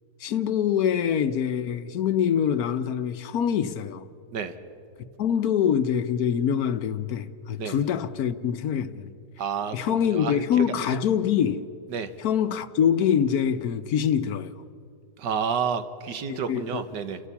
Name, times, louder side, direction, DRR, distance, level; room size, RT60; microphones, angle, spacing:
voice 1, 0.2-4.1 5.2-9.1 9.7-11.7 12.2-14.5 16.3-16.9, left 8 dB, 65° left, 1.2 m, -25 dB
voice 2, 9.4-10.7 11.9-12.1 15.2-17.2, right 6 dB, 90° right, 1.8 m, -30 dB
30.0 x 13.5 x 7.0 m
omnidirectional pair, 1.8 m